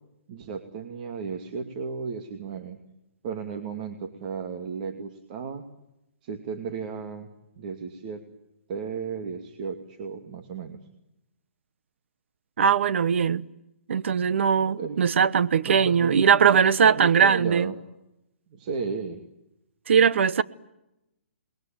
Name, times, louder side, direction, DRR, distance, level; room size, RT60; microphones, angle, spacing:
voice 1, 0.3-2.8 3.2-5.6 6.2-7.3 7.6-8.2 8.7-10.8 14.8-15.1 15.6-16.2 16.5-17.7 18.5-19.2, right 5 dB, 40° right, 2.6 m, -34 dB
voice 2, 12.6-13.4 13.9-17.7 19.9-20.4, right 7 dB, 60° right, 1.1 m, -20 dB
28.0 x 21.5 x 9.1 m
hypercardioid pair, 150°, 7 cm